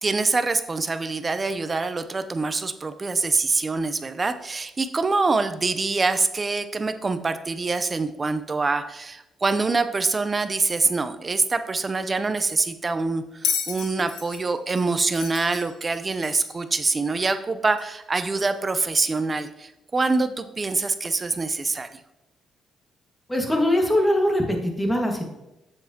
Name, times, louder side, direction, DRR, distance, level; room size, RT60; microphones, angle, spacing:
voice 1, 0.0-22.0, right 3 dB, 30° right, 11 dB, 0.6 m, -25 dB
Bell, 13.4-16.6 17.8-17.9, left 7 dB, 85° left, 0.9 m, -32 dB
voice 2, 23.3-25.3, left 1 dB, 15° left, 2 dB, 1.7 m, -22 dB
7.9 x 7.4 x 2.9 m, 0.92 s
cardioid pair, 90°, 0 cm